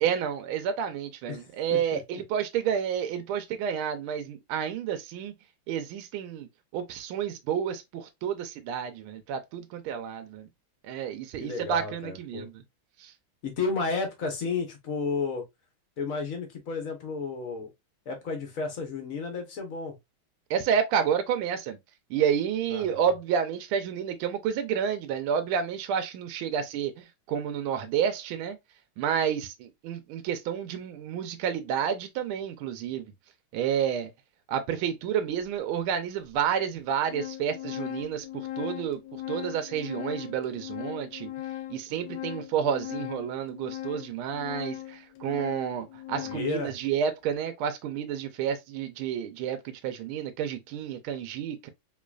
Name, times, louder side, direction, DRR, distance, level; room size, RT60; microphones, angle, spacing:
voice 1, 0.0-5.3 5.7-6.5 6.7-10.5 10.9-12.5 13.0-13.1 20.5-21.8 22.1-28.6 29.0-33.0 33.5-34.1 34.5-38.3 38.6-39.0 39.3-41.3 41.7-51.7, right 8 dB, 85° right, 1.4 m, -30 dB
voice 2, 1.3-2.2 11.4-12.5 13.4-15.4 16.0-17.7 18.1-19.9 22.7-23.0 46.2-46.7, left 4 dB, 50° left, 1.1 m, -32 dB
Organ, 35.4-35.5 36.3-36.4 36.8-46.6, left 14 dB, 70° left, 1.2 m, -39 dB
3.7 x 3.1 x 2.3 m
omnidirectional pair, 2.3 m